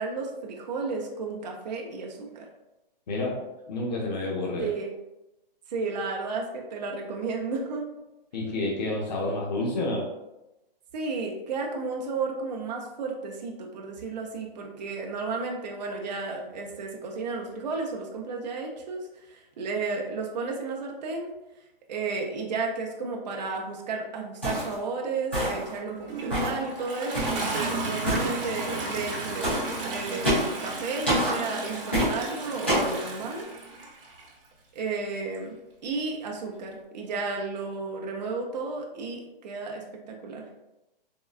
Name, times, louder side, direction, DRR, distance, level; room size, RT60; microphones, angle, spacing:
voice 1, 0.0-2.5 4.6-4.9 5.7-7.9 10.9-21.3 21.9-33.5 34.7-35.5 35.8-40.5, right 4 dB, 45° right, 0 dB, 0.5 m, -33 dB
voice 2, 3.1-3.4 3.7-4.7 8.3-10.1, left 2 dB, 45° left, -2 dB, 0.7 m, -29 dB
sound 1, 24.4-24.7 25.3-25.7 26.3-26.6 27.1-27.4 28.0-28.3 29.4-29.7 30.2-30.5 31.1-31.4 31.9-32.1 32.7-32.9, equal, 15° left, 0.4 m, -26 dB
Toilet flush, 25.9-34.3 35.3-35.4, right 2 dB, 65° right, 0.8 m, -34 dB
3.6 x 2.1 x 2.3 m, 0.96 s
hypercardioid pair, 175°, 29 cm